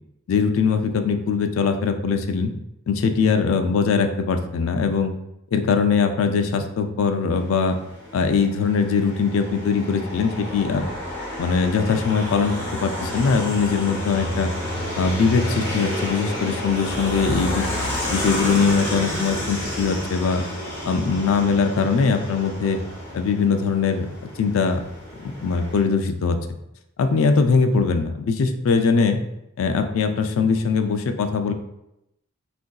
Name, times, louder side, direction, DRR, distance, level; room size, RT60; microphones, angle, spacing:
voice 1, 0.3-2.5 2.9-5.1 5.5-7.8 8.1-10.9 11.4-12.6 12.8-14.5 15.0-17.7 18.1-20.4 20.9-22.8 23.1-24.1 24.4-24.8 25.2-26.4 27.0-29.2 29.6-31.5, left 5 dB, 65° left, 6 dB, 0.3 m, -21 dB
sound 1, 7.4-25.8, left 1 dB, 10° left, 0.8 m, -30 dB
3.7 x 2.5 x 2.3 m, 0.84 s
head